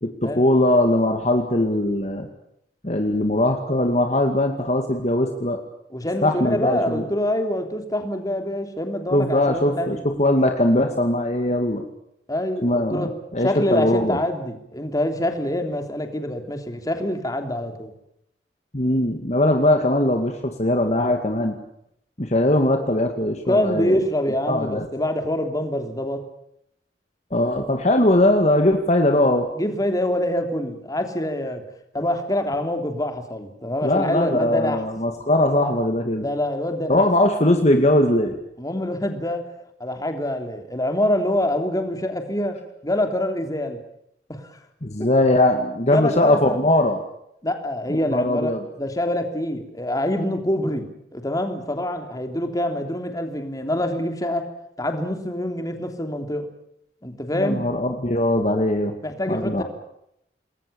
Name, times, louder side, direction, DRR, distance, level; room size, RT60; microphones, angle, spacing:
voice 1, 0.0-2.3 2.8-5.6 6.2-7.1 9.1-11.8 12.6-14.2 18.7-21.6 22.2-24.0 24.5-24.9 27.3-29.5 33.8-36.3 36.9-38.4 44.8-47.0 47.9-48.6 57.3-58.9 59.3-59.6, left 1 dB, 40° left, 5 dB, 2.2 m, -20 dB
voice 2, 5.9-10.0 12.3-13.1 13.4-17.9 23.5-26.2 29.5-31.6 31.9-34.8 36.2-37.0 38.6-39.4 39.8-43.8 44.3-44.5 45.9-46.6 47.4-48.5 48.8-50.8 51.1-54.5 54.8-56.5 57.0-57.6 59.0-59.6, left 1 dB, 20° left, 6 dB, 3.3 m, -25 dB
28.5 x 21.0 x 7.1 m, 0.77 s
head